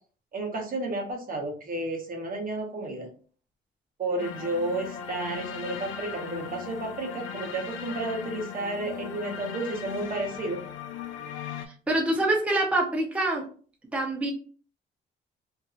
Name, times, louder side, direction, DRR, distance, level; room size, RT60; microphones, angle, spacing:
voice 1, 0.3-3.1 4.0-10.6, right 2 dB, 45° right, 1 dB, 0.9 m, -32 dB
sound 1, 4.2-11.7, left 8 dB, 80° left, 0.4 m, -38 dB
voice 2, 11.9-13.4 13.9-14.3, right 1 dB, 5° right, -1 dB, 0.6 m, -25 dB
2.5 x 2.4 x 2.4 m, 0.41 s
cardioid pair, 90°, 20 cm